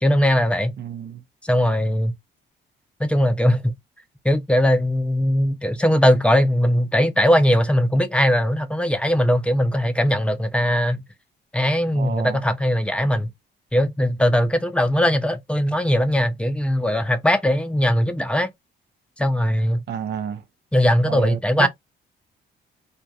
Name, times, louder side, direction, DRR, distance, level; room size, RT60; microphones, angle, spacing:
voice 1, 0.0-0.7 1.4-2.1 3.0-3.7 4.2-11.0 11.5-13.3 13.7-18.5 19.2-19.8 20.7-21.7, equal, 5° left, 0.5 m, -20 dB
voice 2, 0.8-1.2 11.9-12.4 19.9-20.4 21.0-21.7, right 8 dB, 60° right, 0.6 m, -30 dB
2.3 x 2.2 x 2.7 m
cardioid pair, 90°, 20 cm